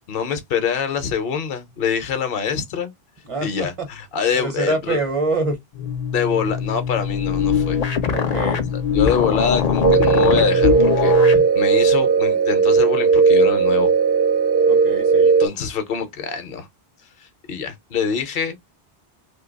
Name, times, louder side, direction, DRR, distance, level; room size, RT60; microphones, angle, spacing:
voice 1, 0.1-2.9 3.4-5.0 6.1-7.8 8.7-13.9 15.4-16.7 17.2-18.6, left 7 dB, 65° left, 0.9 m, -25 dB
voice 2, 3.2-3.9 4.3-5.6 8.1-8.7 14.7-15.3, right 3 dB, 35° right, 0.8 m, -25 dB
sound 1, 5.7-11.5, left 7 dB, 50° left, 0.5 m, -22 dB
sound 2, 9.8-15.5, right 5 dB, 70° right, 0.7 m, -16 dB
2.7 x 2.2 x 3.8 m
omnidirectional pair, 1.0 m